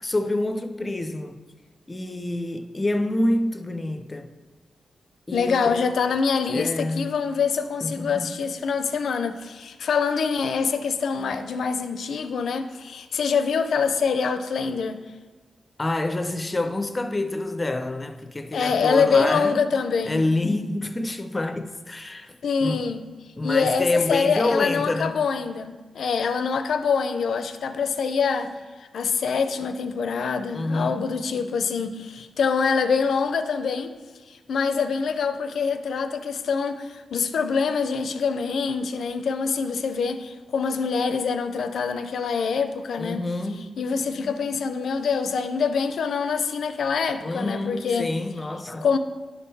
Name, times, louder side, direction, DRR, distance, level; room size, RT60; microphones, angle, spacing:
voice 1, 0.0-1.3 1.9-4.3 5.3-5.8 6.5-7.2 7.8-8.3 15.8-19.7 20.0-22.8 23.4-25.2 30.5-31.1 43.0-43.7 47.2-48.9, left 2 dB, 20° left, 0.4 m, -27 dB
voice 2, 5.3-15.0 18.5-20.3 22.4-23.1 23.4-28.5 28.9-33.9 34.3-43.2 43.8-48.2 48.8-49.0, left 5 dB, 75° left, 0.5 m, -25 dB
11.0 x 3.7 x 4.1 m
wide cardioid pair, 130°, 0 cm